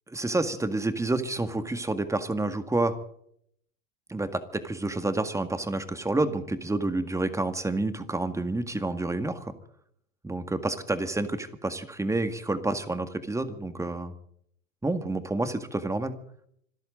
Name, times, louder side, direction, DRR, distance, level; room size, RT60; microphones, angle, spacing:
voice 1, 0.1-3.0 4.1-9.5 10.2-14.1 14.8-16.1, right 2 dB, 5° right, 9 dB, 1.9 m, -29 dB
26.5 x 13.5 x 3.9 m, 0.66 s
hypercardioid pair, 105°, 39 cm